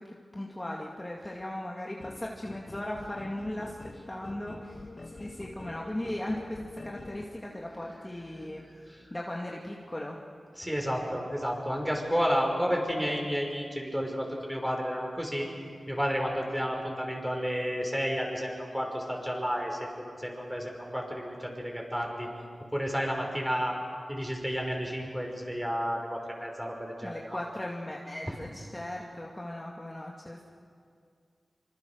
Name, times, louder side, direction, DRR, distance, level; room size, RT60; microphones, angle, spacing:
voice 1, 0.0-8.6 9.1-10.2 27.0-30.5, left 1 dB, 20° left, -2 dB, 2.2 m, -38 dB
sound 1, 2.0-7.3, left 2 dB, 45° left, 1.8 m, -46 dB
voice 2, 10.6-15.5 15.9-19.8 20.1-22.3 22.7-23.7 24.1-27.4, equal, 5° right, 1 dB, 5.8 m, -31 dB
26.0 x 25.5 x 6.5 m, 2.3 s
wide cardioid pair, 70°, 0 cm